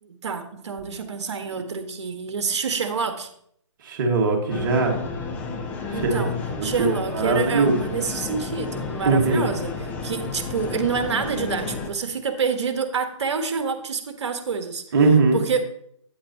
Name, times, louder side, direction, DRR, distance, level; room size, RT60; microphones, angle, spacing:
voice 1, 0.0-3.3 5.9-6.3 6.6-9.7 10.0-14.8 15.3-15.6, right 5 dB, 60° right, 7 dB, 1.4 m, -27 dB
voice 2, 3.8-5.0 5.9-6.2 6.5-7.8 9.1-9.4 14.9-15.4, right 3 dB, 40° right, 1 dB, 1.7 m, -20 dB
sound 1, 4.5-11.9, left 4 dB, 10° left, 0.5 m, -32 dB
9.1 x 8.6 x 2.8 m, 0.68 s
figure-of-eight pair, 145°, 16 cm